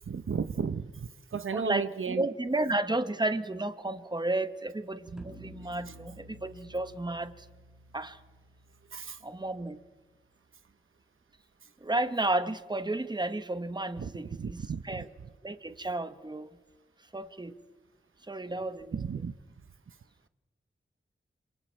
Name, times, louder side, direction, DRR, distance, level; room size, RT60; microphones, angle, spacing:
voice 1, 0.1-2.3 8.9-9.2 14.0-14.1 14.4-14.8 18.9-19.3, right 6 dB, 75° right, 0.8 m, -33 dB
voice 2, 1.5-7.4 7.9-8.2 9.2-9.8 11.8-15.1 15.4-16.5 17.1-17.5 18.3-19.0, right 2 dB, 20° right, 1.1 m, -32 dB
sound 1, 5.2-10.1, equal, 5° right, 2.1 m, -53 dB
28.0 x 27.0 x 4.5 m
wide cardioid pair, 95°, 21 cm